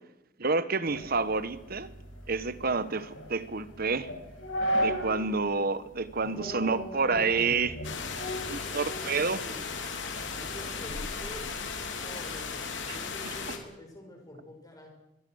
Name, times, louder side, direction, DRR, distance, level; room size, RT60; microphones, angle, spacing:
voice 1, 0.4-1.9 2.3-4.1 4.7-7.7 8.5-9.4 12.9-13.0 13.2-13.3, right 4 dB, 50° right, 1.3 m, -29 dB
sound 1, 0.9-5.3 5.7-5.8 6.4-6.8 7.1-9.2 9.6-12.0, equal, 90° left, 5.5 m, -36 dB
sound 2, 1.0-13.4, equal, 80° right, 5.2 m, -51 dB
voice 2, 6.2-7.6 8.6-9.6 10.3-11.5 11.9-14.9, left 1 dB, 20° left, 6.8 m, -45 dB
sound 3, 7.8-13.6, left 5 dB, 70° left, 3.4 m, -36 dB
25.0 x 22.5 x 6.5 m
head